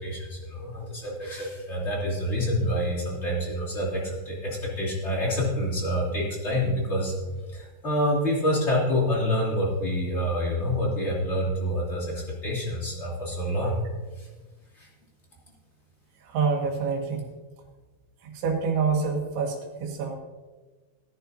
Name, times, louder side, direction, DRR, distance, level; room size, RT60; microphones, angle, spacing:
voice 1, 0.0-7.1 7.5-13.8 14.2-14.3 14.8-14.9, equal, 25° left, -4 dB, 1.6 m, -27 dB
voice 2, 16.2-17.2 18.2-20.2, right 5 dB, 75° right, 0 dB, 4.1 m, -27 dB
18.5 x 10.0 x 2.8 m, 1.3 s
omnidirectional pair, 5.4 m